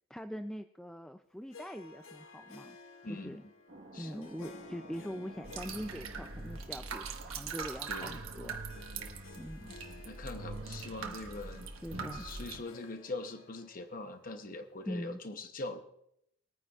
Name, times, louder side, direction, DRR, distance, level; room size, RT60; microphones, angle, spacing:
voice 1, 0.1-2.8 3.0-3.4 4.0-8.6 9.4-9.8 11.8-12.3 14.9-15.2, equal, 5° left, 7 dB, 0.3 m, -43 dB
Harp, 1.5-15.1, left 4 dB, 80° left, 0.9 m, -56 dB
voice 2, 3.0-3.5 3.9-4.3 7.9-8.2 9.0-9.2 10.0-15.8, left 2 dB, 45° left, 7 dB, 0.8 m, -43 dB
sound 1, 3.7-10.0, right 1 dB, 60° right, 1.3 m, -54 dB
sound 2, 5.4-12.6, right 4 dB, 85° right, 1.2 m, -42 dB
21.5 x 9.5 x 2.4 m, 0.75 s
head